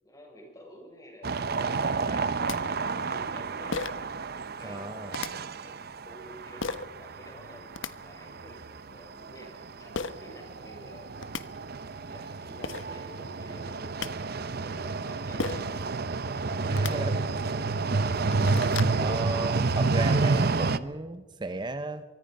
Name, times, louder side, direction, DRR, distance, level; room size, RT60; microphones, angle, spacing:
voice 1, 0.0-2.5 2.9-3.8 4.4-7.7 8.0-8.6 8.9-11.1 11.9-14.1 14.6-15.9 16.5-17.8, equal, 20° left, 0 dB, 7.2 m, -50 dB
sound 1, 1.2-20.8, right 3 dB, 55° right, 0.8 m, -30 dB
sound 2, 2.2-2.3 2.5-2.6 3.7-4.1 5.1-5.3 6.6-6.9 7.5-7.9 9.9-10.1 10.9-11.0 11.2-11.4 12.3-12.4 12.6-12.9 13.7-14.1 15.4-15.7 16.7-16.9 17.6-17.7 18.1-19.0, left 4 dB, 85° left, 1.1 m, -34 dB
voice 2, 4.6-5.2 16.7-17.3 18.9-22.0, right 2 dB, 25° right, 10 dB, 0.8 m, -34 dB
24.5 x 23.5 x 5.4 m, 1.4 s
head